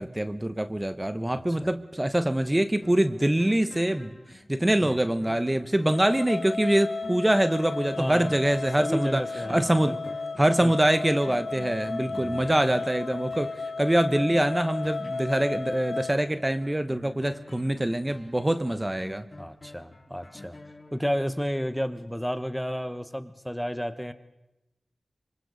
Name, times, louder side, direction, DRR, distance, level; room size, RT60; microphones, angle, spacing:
voice 1, 0.0-4.1 4.5-9.2 9.5-10.0 10.4-13.5 13.8-19.2, right 1 dB, 20° right, 10 dB, 1.0 m, -24 dB
voice 2, 1.2-1.7 4.8-5.0 8.0-8.4 8.8-10.0 10.6-10.7 12.1-12.5 19.4-20.6 20.9-24.1, equal, 5° left, 11 dB, 1.1 m, -32 dB
sound 1, 2.8-21.5 22.0-22.1, left 2 dB, 40° left, 4.2 m, -47 dB
sound 2, 5.9-16.2, left 3 dB, 75° left, 1.3 m, -34 dB
26.0 x 24.5 x 4.1 m, 0.95 s
cardioid pair, 45°, 0 cm